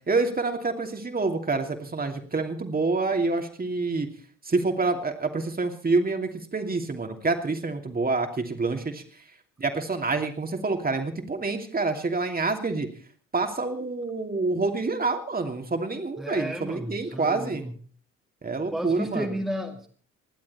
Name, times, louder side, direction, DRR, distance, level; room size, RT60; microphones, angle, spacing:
voice 1, 0.1-4.1 4.4-9.0 9.6-12.9 13.3-17.6 18.4-19.3, right 3 dB, 20° right, 4 dB, 2.8 m, -27 dB
voice 2, 16.2-17.7 18.7-19.9, equal, ahead, 2 dB, 2.3 m, -32 dB
28.0 x 11.5 x 4.3 m, 0.44 s
figure-of-eight pair, 50°, 41 cm